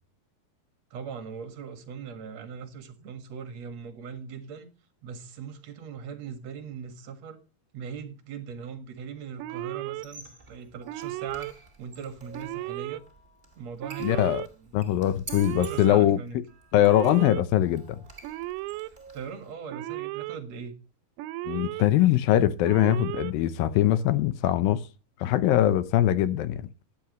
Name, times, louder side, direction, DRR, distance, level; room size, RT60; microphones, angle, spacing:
voice 1, 0.9-4.7 5.0-7.4 7.7-13.0 13.6-14.3 14.6-14.7 15.6-16.4 18.9-20.7, right 6 dB, 50° right, 2.5 m, -40 dB
Alarm, 9.4-10.1 10.9-11.5 12.3-13.0 13.8-14.5 15.3-16.0 16.8-17.4 18.2-18.9 19.7-20.4 21.2-21.8 22.7-23.3, right 18 dB, 85° right, 2.6 m, -35 dB
Squeak, 9.9-19.5, right 3 dB, 30° right, 0.9 m, -49 dB
voice 2, 14.0-14.4 14.7-16.4 16.7-18.0 21.5-24.8 25.2-26.7, left 12 dB, 75° left, 2.4 m, -22 dB
13.5 x 10.5 x 3.1 m
omnidirectional pair, 4.4 m